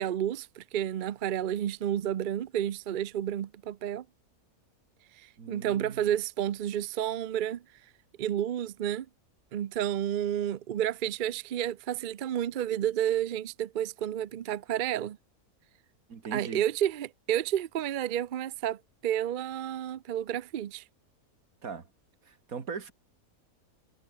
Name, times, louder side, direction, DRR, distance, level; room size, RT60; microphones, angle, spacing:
voice 1, 0.0-4.0 5.2-7.6 8.2-9.1 9.5-15.2 16.3-20.8, right 10 dB, 60° right, 0.5 m, -31 dB
voice 2, 5.4-6.0 16.1-16.6 21.6-21.9 22.2-22.9, right 5 dB, 75° right, 2.3 m, -39 dB
omnidirectional pair, 1.5 m